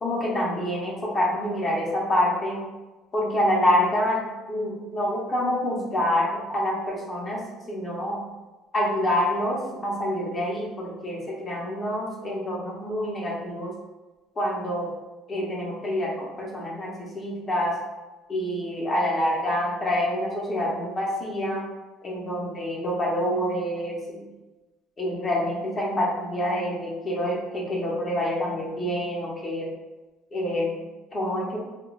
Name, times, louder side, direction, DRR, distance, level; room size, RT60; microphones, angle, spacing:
voice 1, 0.0-2.6 3.1-4.2 4.5-8.2 8.7-13.7 14.4-14.9 15.3-17.8 18.3-21.6 22.0-24.2 25.0-29.7 30.3-30.8 31.1-31.6, left 1 dB, 25° left, -2 dB, 0.7 m, -27 dB
2.3 x 2.3 x 3.0 m, 1.2 s
cardioid pair, 135°, 0 cm